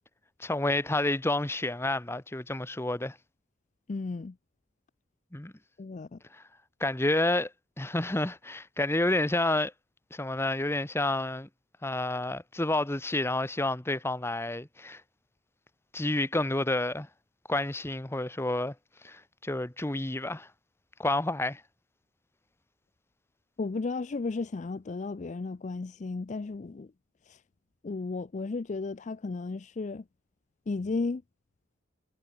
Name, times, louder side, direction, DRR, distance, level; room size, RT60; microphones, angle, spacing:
voice 1, 0.4-3.2 5.3-5.5 6.3-6.4 6.8-7.5 7.8-9.7 10.1-11.5 11.8-15.0 15.9-17.1 17.5-18.7 19.0-20.5 21.0-21.6, left 2 dB, 10° left, 0.9 m, -29 dB
voice 2, 3.9-4.3 5.8-6.2 23.6-26.9 27.3-27.4 27.8-30.0 30.7-31.2, left 3 dB, 35° left, 0.4 m, -34 dB
head